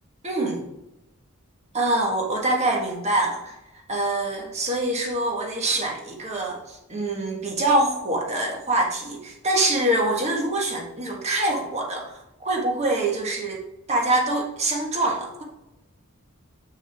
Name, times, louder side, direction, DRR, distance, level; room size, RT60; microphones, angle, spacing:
voice 1, 0.2-0.7 1.7-3.6 3.9-13.6 13.9-15.4, right 2 dB, 30° right, 0 dB, 1.5 m, -25 dB
7.2 x 6.4 x 3.6 m, 0.91 s
head